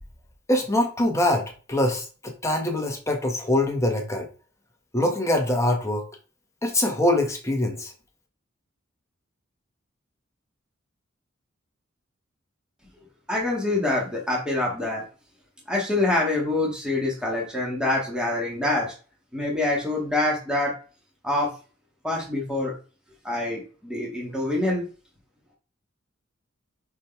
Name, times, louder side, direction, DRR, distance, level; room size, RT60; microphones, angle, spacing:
voice 1, 0.5-4.3 4.9-6.0 6.6-7.9, left 1 dB, 15° left, 1 dB, 1.3 m, -24 dB
voice 2, 13.3-15.0 15.7-18.9 19.3-20.7 21.2-21.5 22.0-22.7 23.2-24.8, left 2 dB, 5° right, -3 dB, 2.1 m, -25 dB
5.9 x 5.2 x 3.4 m, 0.35 s
head